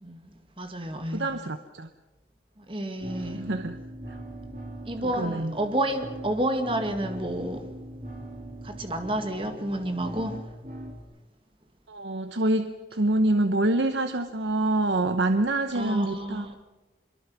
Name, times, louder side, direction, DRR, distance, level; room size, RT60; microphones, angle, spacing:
voice 1, 0.6-1.3 2.6-3.4 4.8-7.7 8.6-10.4 15.7-16.6, right 1 dB, 30° right, 1.8 m, -30 dB
voice 2, 1.1-1.9 3.2-3.8 4.1-4.2 5.0-5.6 11.9-16.6, right 2 dB, 80° right, 0.9 m, -26 dB
sound 1, 3.0-11.0, right 1 dB, 45° right, 3.2 m, -41 dB
25.0 x 22.5 x 6.1 m
head